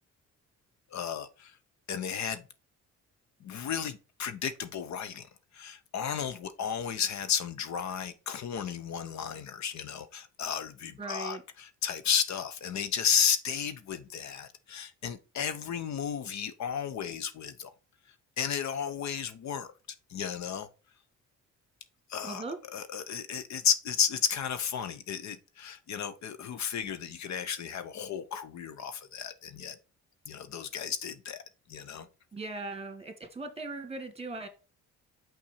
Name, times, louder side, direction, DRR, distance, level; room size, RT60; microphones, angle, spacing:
voice 1, 0.9-1.6 1.9-2.4 3.4-5.3 5.5-17.7 18.4-19.7 20.1-20.7 22.1-22.4 22.7-29.8 30.3-31.4 31.7-32.1, left 8 dB, 65° left, 0.8 m, -33 dB
voice 2, 11.0-11.4 22.2-22.6 32.3-34.5, right 3 dB, 20° right, 1.8 m, -39 dB
5.9 x 5.3 x 4.3 m
cardioid pair, 90°, 30 cm